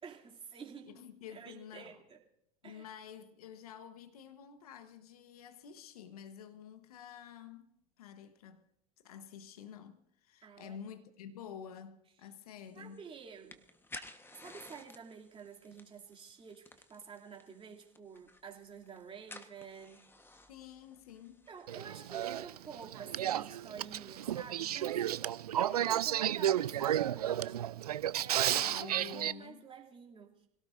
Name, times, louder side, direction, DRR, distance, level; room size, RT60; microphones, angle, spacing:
voice 1, 0.0-2.2 2.6-2.9 10.4-10.8 12.7-13.6 14.3-20.0 21.5-25.0 25.6-28.8 29.1-30.5, right 6 dB, 30° right, 2.9 m, -50 dB
voice 2, 0.8-2.0 2.6-8.6 9.0-13.0 20.5-21.5 28.4-29.7, left 8 dB, 80° left, 1.3 m, -50 dB
sound 1, 12.7-25.2, left 2 dB, 10° left, 1.3 m, -56 dB
Male speech man speaking / Female speech woman speaking / Conversation, 21.7-29.3, right 11 dB, 90° right, 0.5 m, -32 dB
25.5 x 17.5 x 2.6 m
hypercardioid pair, 80°, 19 cm